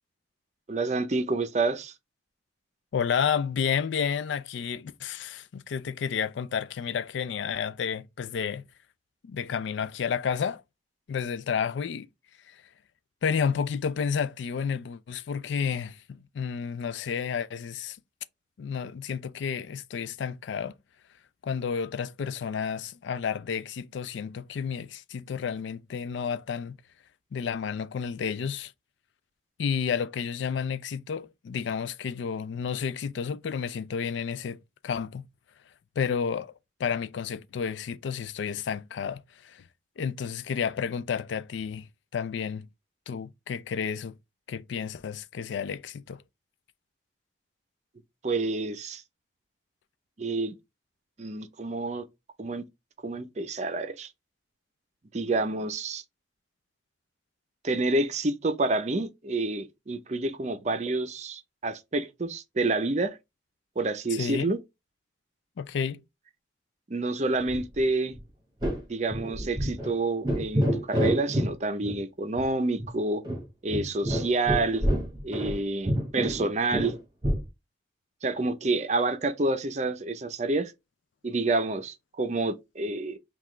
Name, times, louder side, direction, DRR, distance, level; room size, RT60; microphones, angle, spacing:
voice 1, 0.7-1.9 48.2-49.0 50.2-50.5 51.2-52.0 52.4-52.6 53.0-54.1 55.1-56.0 57.6-63.2 63.8-64.6 66.9-68.1 68.9-73.2 73.6-74.8 75.2-76.9 78.2-80.7 81.2-83.2, right 2 dB, 40° right, 0.6 m, -28 dB
voice 2, 2.9-8.6 9.2-10.6 11.1-12.1 12.5-12.6 13.2-18.0 18.6-20.7 21.4-26.8 27.3-28.7 29.6-34.6 34.8-35.2 36.0-36.5 36.8-39.6 40.0-41.9 42.1-42.7 43.1-44.2 44.5-46.2 64.1-64.5 65.6-66.0, left 7 dB, 85° left, 0.4 m, -31 dB
sound 1, 67.5-67.9 68.1-68.2 68.6-68.8 69.1-69.9 70.2-71.5 71.8-72.0 72.4-72.5 72.8-72.9 73.2-75.6 75.9-77.5, equal, 25° right, 1.1 m, -28 dB
5.8 x 2.3 x 3.1 m
head